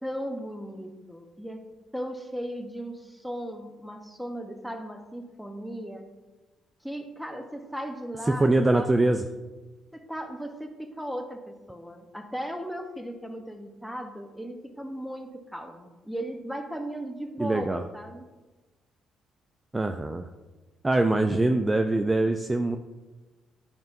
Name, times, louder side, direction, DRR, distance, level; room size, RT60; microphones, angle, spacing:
voice 1, 0.0-1.6 1.9-6.0 6.8-9.0 9.9-18.3, equal, ahead, 5 dB, 0.9 m, -37 dB
voice 2, 8.3-9.2 17.4-17.8 19.7-20.3 20.8-22.8, right 2 dB, 20° right, 6 dB, 0.4 m, -23 dB
9.4 x 5.2 x 2.6 m, 1.2 s
cardioid pair, 80°, 0 cm